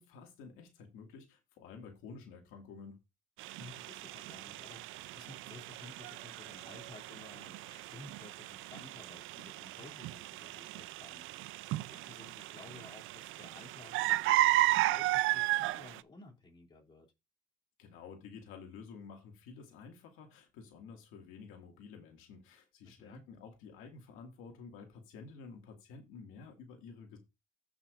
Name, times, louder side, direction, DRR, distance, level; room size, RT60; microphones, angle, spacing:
voice 1, 0.0-3.0 17.8-27.2, left 5 dB, 85° left, 2.1 m, -51 dB
sound 1, 3.4-16.0, right 16 dB, 75° right, 0.4 m, -34 dB
voice 2, 3.5-17.1 22.8-23.2, left 3 dB, 25° left, 2.7 m, -55 dB
14.5 x 6.0 x 2.5 m
cardioid pair, 120°, 21 cm